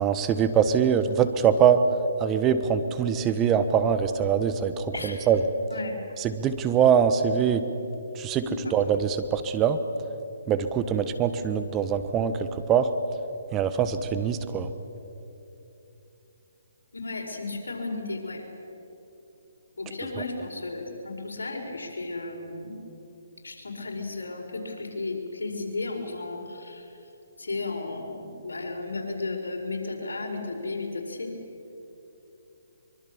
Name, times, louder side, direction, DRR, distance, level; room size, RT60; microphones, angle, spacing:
voice 1, 0.0-1.8 2.2-5.4 6.2-7.7 8.1-9.8 10.5-12.9 13.5-14.7, right 8 dB, 20° right, 10 dB, 1.2 m, -23 dB
voice 2, 8.4-8.9 16.9-18.4 19.8-22.8 23.4-27.0 27.4-31.3, left 3 dB, 85° left, 1 dB, 5.2 m, -34 dB
24.5 x 23.5 x 7.2 m, 3.0 s
hypercardioid pair, 145°, 0 cm